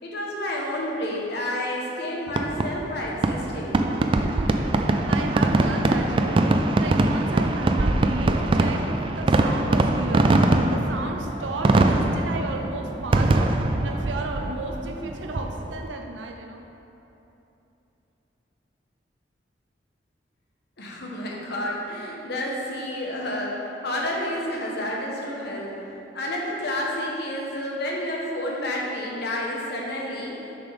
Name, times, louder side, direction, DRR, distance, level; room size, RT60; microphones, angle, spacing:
voice 1, 0.0-4.1 20.8-25.7 26.1-30.4, left 1 dB, 60° left, -2 dB, 1.1 m, -30 dB
Fireworks, 2.3-15.9, right 2 dB, 30° right, 0.3 m, -22 dB
voice 2, 4.2-4.8 5.1-16.6, right 2 dB, 85° right, 3 dB, 0.6 m, -34 dB
6.8 x 5.9 x 3.5 m, 3.0 s
head